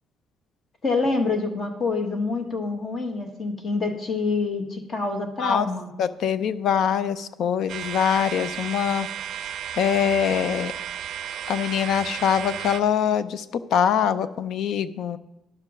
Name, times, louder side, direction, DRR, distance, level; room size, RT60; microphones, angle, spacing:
voice 1, 0.8-5.9, left 3 dB, 25° left, 5 dB, 1.2 m, -26 dB
voice 2, 6.0-9.1 9.3-9.5 9.8-10.7 11.5-15.2, left 8 dB, 50° left, 14 dB, 0.5 m, -23 dB
sound 1, 7.7-12.8, right 9 dB, 50° right, 0.5 m, -33 dB
10.5 x 6.8 x 6.0 m, 0.91 s
cardioid pair, 170°, 0 cm